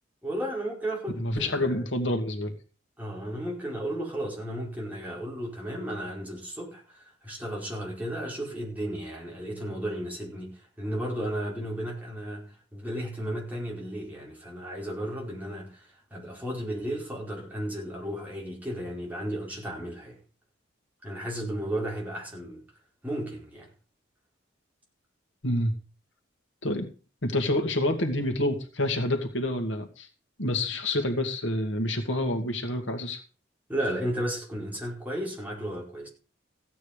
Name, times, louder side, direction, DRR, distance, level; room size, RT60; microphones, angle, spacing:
voice 1, 0.2-1.9 3.0-20.2 21.0-22.6 23.0-23.7 33.7-36.1, right 1 dB, 10° right, 4.5 m, -34 dB
voice 2, 1.2-2.5 25.4-25.7 26.6-26.9 27.2-30.1 30.4-33.2, left 1 dB, 70° left, 2.3 m, -28 dB
15.5 x 9.4 x 5.1 m
head